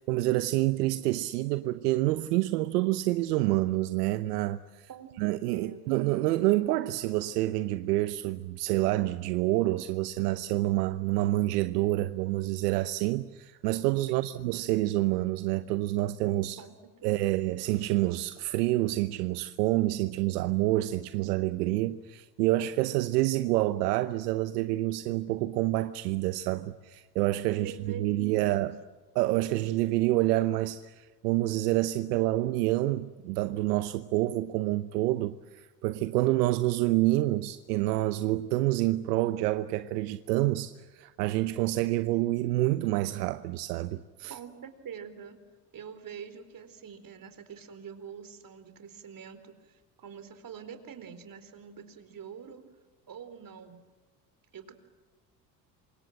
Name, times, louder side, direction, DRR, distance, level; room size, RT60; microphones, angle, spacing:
voice 1, 0.0-4.9 5.2-16.6 17.0-28.8 29.1-44.3, right 17 dB, 80° right, 0.9 m, -28 dB
voice 2, 4.9-6.0 14.1-14.5 16.6-17.4 27.6-28.7 44.3-45.4 45.7-52.6 53.1-53.8 54.5-54.7, right 7 dB, 45° right, 4.3 m, -46 dB
28.0 x 26.0 x 7.7 m
hypercardioid pair, 70°, 46 cm